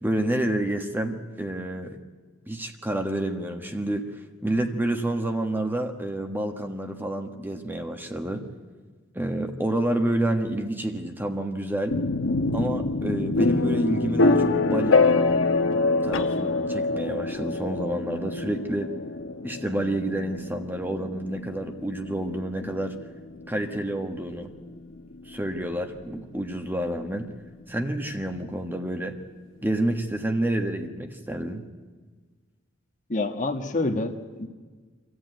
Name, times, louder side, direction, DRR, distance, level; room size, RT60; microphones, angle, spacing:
voice 1, 0.0-2.0 2.5-4.0 4.4-8.4 9.1-12.0 12.5-15.0 16.0-18.9 19.4-23.0 23.5-24.5 25.3-27.3 27.7-29.2 29.6-31.6, right 1 dB, 10° right, 5 dB, 1.3 m, -29 dB
sound 1, 11.9-25.7, left 3 dB, 75° left, 1.1 m, -25 dB
voice 2, 33.1-34.5, left 2 dB, 40° left, 6 dB, 1.4 m, -27 dB
25.0 x 14.5 x 9.2 m, 1.5 s
head